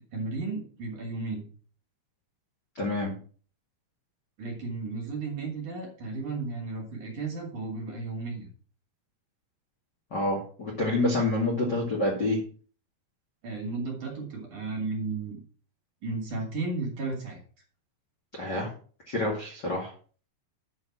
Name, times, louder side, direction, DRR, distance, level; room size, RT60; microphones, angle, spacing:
voice 1, 0.1-1.5 4.4-8.5 13.4-15.4 16.0-17.4, right 3 dB, 45° right, 0 dB, 3.2 m, -34 dB
voice 2, 2.8-3.1 10.1-12.4 18.4-18.7 19.1-19.9, left 2 dB, 50° left, -3 dB, 1.2 m, -27 dB
9.6 x 6.3 x 6.1 m, 0.42 s
omnidirectional pair, 5.9 m